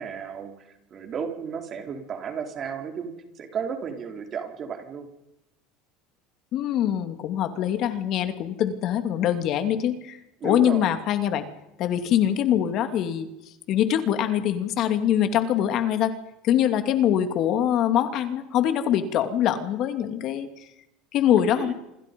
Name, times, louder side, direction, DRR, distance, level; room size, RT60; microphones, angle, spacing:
voice 1, 0.0-5.1 10.4-10.9 21.3-21.7, right 6 dB, 35° right, 5 dB, 4.1 m, -34 dB
voice 2, 6.5-10.2 10.4-11.4 11.8-13.3 13.7-16.1 16.4-20.7 21.1-21.7, left 10 dB, 50° left, 8 dB, 2.7 m, -23 dB
26.5 x 26.5 x 5.4 m, 0.88 s
supercardioid pair, 130°, 0 cm